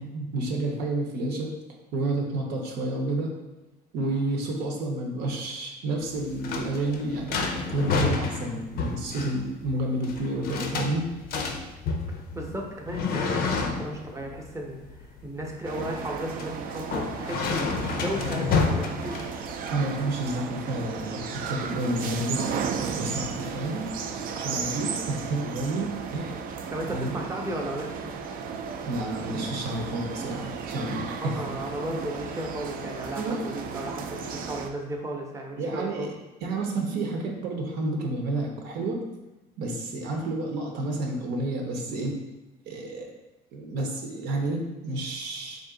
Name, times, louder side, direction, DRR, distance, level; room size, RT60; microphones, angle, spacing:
voice 1, 0.0-1.5 1.9-3.3 3.9-11.1 19.7-22.5 23.0-23.9 24.4-26.4 26.9-27.1 28.9-31.4 33.2-33.4 33.7-33.8 35.6-36.1 36.4-39.0 39.6-42.2 42.7-43.1 43.5-45.6, right 2 dB, 80° right, 1 dB, 0.7 m, -30 dB
sound 1, 6.0-19.7, left 4 dB, 65° left, 0.5 m, -30 dB
voice 2, 12.1-19.3 26.7-28.1 31.2-36.1, right 1 dB, 15° right, 0 dB, 0.7 m, -35 dB
sound 2, 15.6-34.7, right 6 dB, 60° right, 0.4 m, -35 dB
3.6 x 2.6 x 3.7 m, 1.1 s
cardioid pair, 110°, 17 cm